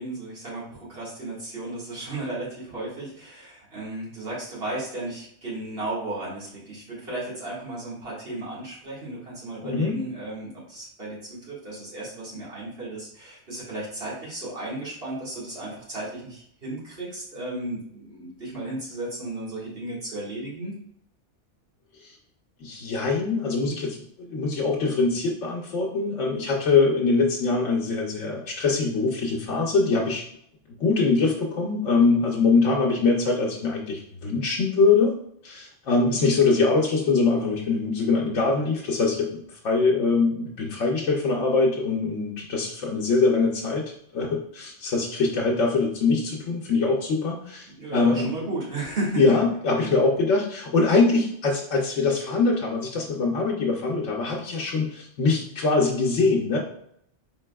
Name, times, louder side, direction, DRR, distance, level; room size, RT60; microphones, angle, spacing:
voice 1, 0.0-20.7 47.8-49.4 49.8-49.9, right 2 dB, 55° right, -6 dB, 1.9 m, -34 dB
voice 2, 9.6-10.0 22.0-22.1 22.6-30.3 30.8-35.1 35.4-48.3 49.2-56.6, left 4 dB, 90° left, -2 dB, 1.1 m, -23 dB
4.5 x 4.0 x 2.2 m, 0.70 s
omnidirectional pair, 1.2 m